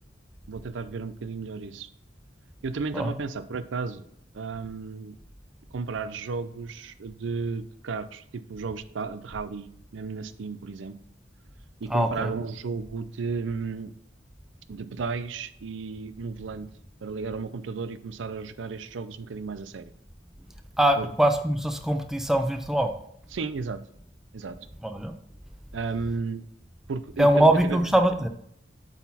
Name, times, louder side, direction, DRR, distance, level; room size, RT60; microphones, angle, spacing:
voice 1, 0.5-1.9 2.6-4.1 4.3-5.2 5.7-10.9 11.8-13.9 14.7-16.7 17.0-19.9 21.0-21.1 23.3-23.8 24.3-24.6 25.7-26.4 26.9-27.8, right 4 dB, 75° right, 13 dB, 0.5 m, -33 dB
voice 2, 11.9-12.3 20.8-22.9 24.8-25.1 27.2-28.3, right 1 dB, ahead, 5 dB, 0.4 m, -22 dB
8.0 x 4.2 x 4.1 m, 0.69 s
head